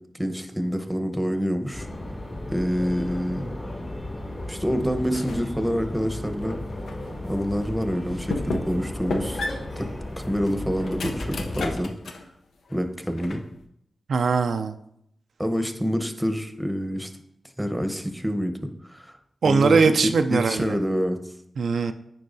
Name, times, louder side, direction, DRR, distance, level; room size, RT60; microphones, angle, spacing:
voice 1, 0.1-1.9 2.5-3.5 4.5-6.6 7.3-9.4 9.8-9.9 10.2-11.9 12.7-13.4 15.4-17.1 17.6-19.1 19.4-21.2, equal, 5° right, 7 dB, 0.9 m, -27 dB
sound 1, 1.7-11.8, left 1 dB, 45° left, 2.0 m, -34 dB
sound 2, 5.1-5.5 6.0-7.1 7.6-7.7 8.3-8.8 9.1-12.3 12.7-13.6, left 3 dB, 85° left, 0.6 m, -34 dB
voice 2, 14.1-14.7 19.4-20.8 21.6-21.9, right 5 dB, 80° right, 8 dB, 0.3 m, -21 dB
9.4 x 4.6 x 2.6 m, 0.75 s
cardioid pair, 45°, 0 cm